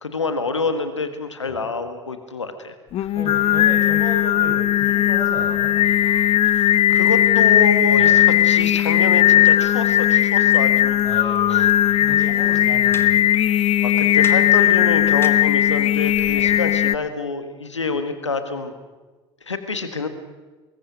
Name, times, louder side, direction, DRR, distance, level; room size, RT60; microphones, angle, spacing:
voice 1, 0.0-3.1 6.4-11.7 13.8-18.7 19.4-20.1, left 4 dB, 85° left, 9 dB, 1.7 m, -27 dB
Singing, 2.9-16.9, left 12 dB, 40° left, 0.8 m, -17 dB
voice 2, 3.1-5.7 7.9-8.2 11.0-13.3 16.3-16.6, right 1 dB, 25° right, 2 dB, 7.2 m, -35 dB
sound 1, 5.5-7.1 7.5-7.8 8.0-8.3 8.6-8.8 9.1-11.1 11.4-11.8 12.9-13.4 14.2-15.3, left 3 dB, 15° left, 2.1 m, -42 dB
24.0 x 22.0 x 6.2 m, 1.3 s
figure-of-eight pair, 65°, 15 cm